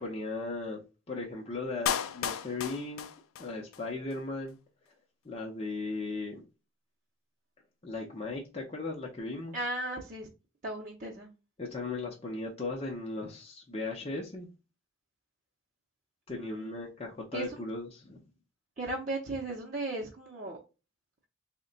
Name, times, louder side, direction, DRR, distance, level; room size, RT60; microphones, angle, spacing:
voice 1, 0.0-3.1 3.4-4.6 5.2-6.4 7.8-9.6 11.6-14.5 16.3-18.2, left 3 dB, 30° left, 0.6 m, -37 dB
Clapping, 1.9-3.8 4.1-4.2, left 9 dB, 85° left, 0.4 m, -34 dB
voice 2, 9.5-10.3 10.6-11.3 16.3-16.9 17.3-17.6 18.8-20.6, right 2 dB, 40° right, 0.6 m, -36 dB
3.7 x 2.2 x 3.7 m
head